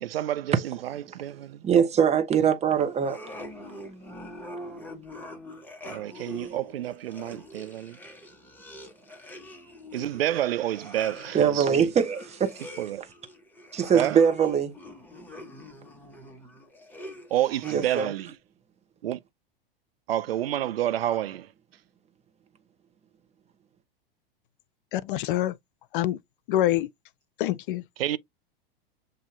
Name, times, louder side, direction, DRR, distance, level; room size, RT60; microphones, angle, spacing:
voice 1, 0.0-1.6 5.8-8.0 9.9-11.9 12.8-13.0 13.9-14.2 17.3-18.3 19.0-19.2 20.1-21.5 28.0-28.2, right 12 dB, 80° right, 0.4 m, -29 dB
voice 2, 1.6-3.2 11.3-12.5 13.7-14.8 17.6-18.1, right 7 dB, 20° right, 0.9 m, -22 dB
sound 1, 2.9-18.3, left 1 dB, 5° left, 1.2 m, -44 dB
voice 3, 24.9-25.5 25.9-26.2 26.5-26.9 27.4-27.8, left 13 dB, 60° left, 0.5 m, -25 dB
7.4 x 2.7 x 2.4 m
hypercardioid pair, 95°, 29 cm